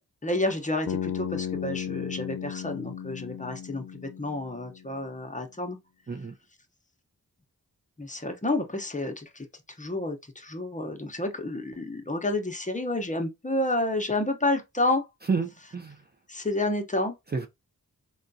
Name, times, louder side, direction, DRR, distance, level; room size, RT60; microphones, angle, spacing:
voice 1, 0.2-5.8 8.0-9.4 9.8-15.1 16.3-17.2, left 2 dB, 20° left, 0.8 m, -30 dB
Bass guitar, 0.9-4.9, left 9 dB, 70° left, 0.6 m, -35 dB
voice 2, 15.3-16.0 17.3-17.5, right 4 dB, 30° right, 0.5 m, -29 dB
3.7 x 2.3 x 2.6 m
cardioid pair, 50°, 34 cm